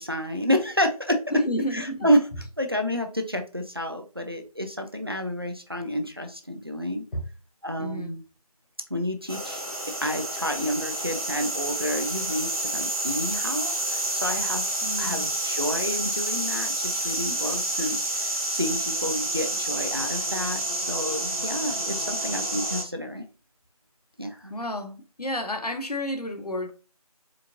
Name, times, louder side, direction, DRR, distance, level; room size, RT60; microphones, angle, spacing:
voice 1, 0.0-1.2 1.7-2.2 2.6-7.0 7.6-8.2 8.9-9.6 10.0-14.7 15.0-23.2 24.2-24.5, equal, 40° right, 0.4 m, -29 dB
voice 2, 1.3-2.5 7.1-7.3 7.8-8.2 14.8-15.3 22.4-22.5 24.5-26.7, left 1 dB, 80° left, 0.8 m, -31 dB
sound 1, 9.3-22.8, right 1 dB, 65° right, 1.5 m, -29 dB
4.4 x 2.5 x 2.4 m
figure-of-eight pair, 175°, 20 cm